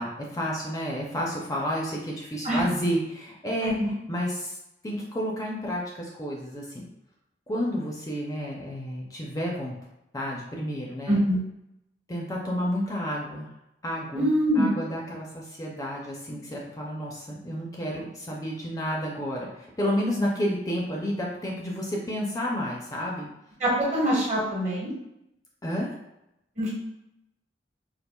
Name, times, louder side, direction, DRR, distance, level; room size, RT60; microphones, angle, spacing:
voice 1, 0.0-4.6 4.8-6.8 7.5-9.7 10.1-11.2 12.1-13.5 13.8-14.3 14.5-23.3 25.6-25.9, equal, 20° left, -2 dB, 0.4 m, -31 dB
voice 2, 11.1-11.4 14.1-14.7 23.6-24.9 26.6-26.7, equal, 40° right, -5 dB, 1.1 m, -24 dB
4.3 x 2.4 x 2.2 m, 0.86 s
head